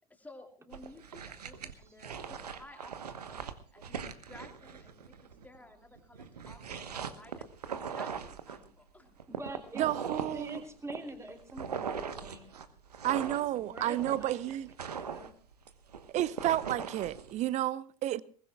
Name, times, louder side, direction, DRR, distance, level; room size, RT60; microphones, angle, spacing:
voice 1, 0.1-7.5 7.9-9.1, left 2 dB, 10° left, 2.7 m, -54 dB
sound 1, 0.7-5.6 6.0-8.7 9.2-17.4, right 6 dB, 75° right, 1.2 m, -40 dB
voice 2, 1.7-2.3 8.5-8.7 9.1-9.9 10.2-12.6 13.3-14.6 14.9-15.3, right 2 dB, 15° right, 3.1 m, -46 dB
voice 3, 9.8-10.6 13.0-14.7 16.1-18.2, right 13 dB, 35° right, 0.7 m, -31 dB
22.5 x 19.5 x 2.3 m
figure-of-eight pair, 75°, 20 cm